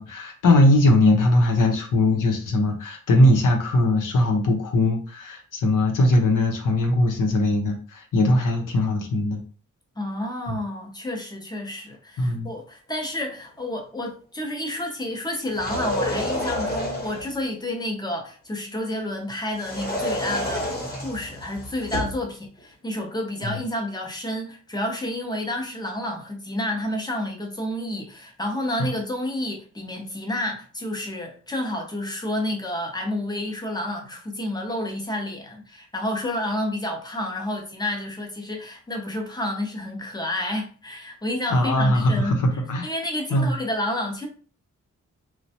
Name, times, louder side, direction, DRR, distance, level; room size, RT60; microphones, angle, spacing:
voice 1, 0.0-9.4 10.5-10.6 12.2-12.5 23.4-23.6 28.8-28.9 41.5-42.9 43.3-43.5, left 1 dB, 80° left, 3 dB, 0.8 m, -20 dB
voice 2, 10.0-20.7 21.0-42.4 42.8-44.3, left 1 dB, 15° left, 1 dB, 0.5 m, -30 dB
sound 1, 15.5-17.3 19.5-22.2, left 1 dB, 30° left, 0.9 m, -29 dB
3.1 x 2.1 x 2.7 m, 0.39 s
wide cardioid pair, 175°, 31 cm